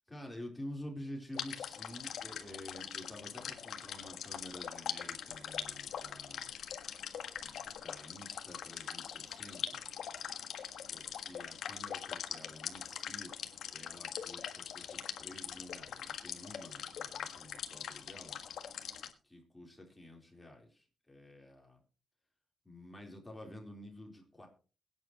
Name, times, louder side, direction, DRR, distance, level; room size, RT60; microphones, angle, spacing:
voice 1, 0.1-6.5 7.4-9.8 10.9-13.3 13.7-18.4 19.2-21.8 22.6-24.5, left 1 dB, 10° left, 0 dB, 3.8 m, -50 dB
sound 1, 1.3-19.1, left 8 dB, 80° left, 1.5 m, -42 dB
22.5 x 9.4 x 3.0 m, 0.36 s
wide cardioid pair, 145°, 0 cm